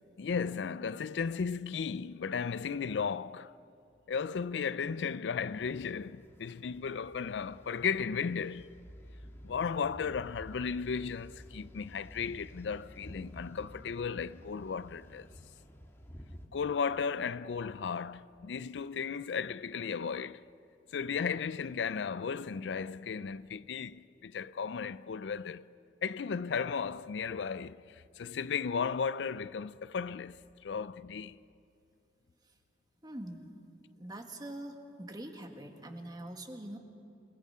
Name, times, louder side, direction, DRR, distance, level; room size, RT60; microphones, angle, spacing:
voice 1, 0.2-3.5 4.1-8.7 9.4-15.3 16.5-20.4 20.9-25.7 26.0-30.4 30.6-31.4, left 6 dB, 75° left, 0.4 m, -35 dB
sound 1, 5.4-16.5, equal, 15° left, 1.6 m, -52 dB
voice 2, 33.0-33.5 33.9-36.8, right 1 dB, 20° right, 1.7 m, -44 dB
28.5 x 18.0 x 5.6 m
head